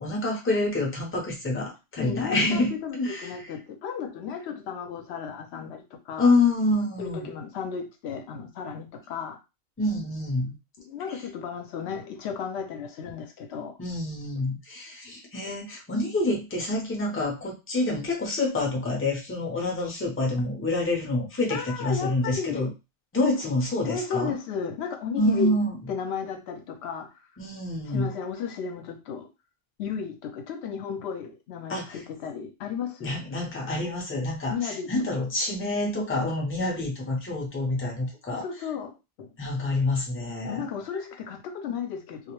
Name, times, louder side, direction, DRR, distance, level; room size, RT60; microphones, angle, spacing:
voice 1, 0.0-3.5 6.2-7.3 9.8-10.6 11.1-11.2 13.8-22.7 23.1-24.3 25.2-25.8 27.4-28.1 31.7-32.0 33.0-38.4 39.4-40.6, left 2 dB, 20° left, 0.4 m, -27 dB
voice 2, 2.0-6.3 7.0-9.4 10.8-13.7 21.5-22.7 23.8-25.5 25.9-27.1 27.9-29.3 29.8-33.1 34.5-34.9 38.4-38.9 40.4-42.3, left 6 dB, 65° left, 0.7 m, -34 dB
2.3 x 2.1 x 2.9 m
omnidirectional pair, 1.4 m